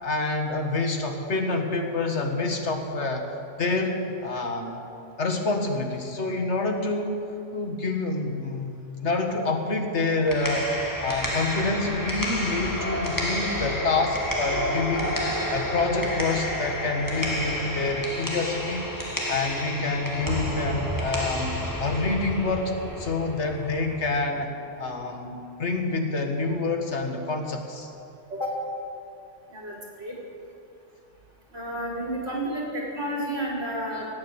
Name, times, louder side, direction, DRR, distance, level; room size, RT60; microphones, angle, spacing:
voice 1, 0.0-3.3 3.6-4.9 5.2-18.9 19.3-24.5 24.8-27.9, left 3 dB, 75° left, 3 dB, 1.9 m, -27 dB
sound 1, 10.1-24.1, equal, 15° left, 2.0 m, -30 dB
voice 2, 29.5-30.1 31.5-34.1, right 1 dB, 65° right, -3 dB, 4.5 m, -31 dB
18.5 x 8.7 x 8.0 m, 2.6 s
omnidirectional pair, 1.2 m